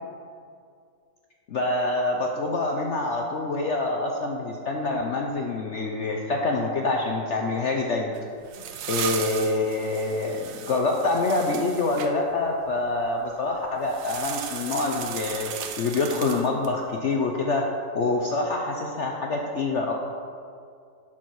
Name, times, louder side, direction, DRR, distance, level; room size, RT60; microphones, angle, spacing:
voice 1, 1.5-8.1 8.9-15.5 15.8-17.6 17.9-19.9, left 3 dB, 65° left, 1 dB, 0.7 m, -26 dB
sound 1, 8.1-12.1 13.9-16.8, right 8 dB, 70° right, 1.1 m, -36 dB
12.0 x 4.4 x 4.6 m, 2.3 s
omnidirectional pair, 1.9 m